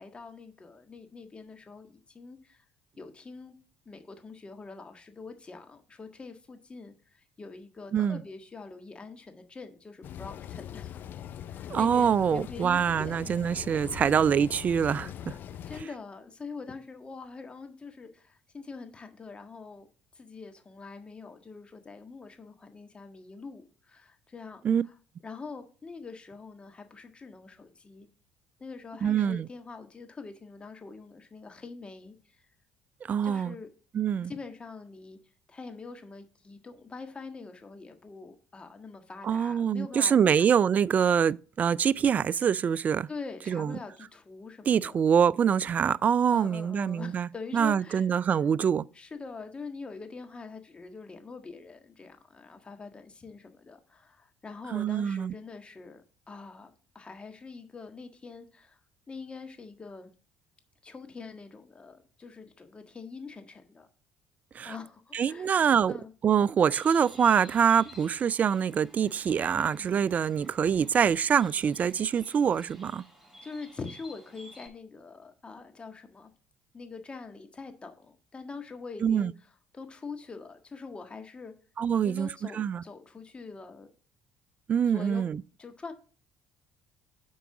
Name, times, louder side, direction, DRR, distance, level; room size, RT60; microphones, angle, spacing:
voice 1, 0.0-2.6 3.0-3.5 3.8-11.0 11.5-13.3 13.9-14.1 15.6-19.9 20.1-24.9 25.2-28.1 28.6-32.1 33.2-33.7 34.3-35.2 35.5-40.5 43.1-45.0 46.3-48.1 48.9-56.0 56.3-58.8 59.1-60.1 60.8-63.9 64.6-65.5 65.9-66.1 73.4-76.3 76.7-79.3 79.7-81.5 81.9-83.9 84.9-85.2 85.6-85.9, left 4 dB, 25° left, 1.5 m, -44 dB
sound 1, 10.0-15.8, left 10 dB, 55° left, 0.5 m, -41 dB
voice 2, 11.7-15.4 24.6-24.8 29.0-29.5 33.1-33.5 33.9-34.3 39.2-43.1 43.5-43.8 44.7-48.9 54.7-55.3 64.5-64.7 65.1-65.9 66.2-73.0 79.0-79.3 81.8-82.8 84.7-85.4, right 7 dB, 40° right, 0.3 m, -25 dB
Bird, 66.7-74.7, equal, 10° right, 3.8 m, -53 dB
7.4 x 4.7 x 6.0 m
hypercardioid pair, 60°, 4 cm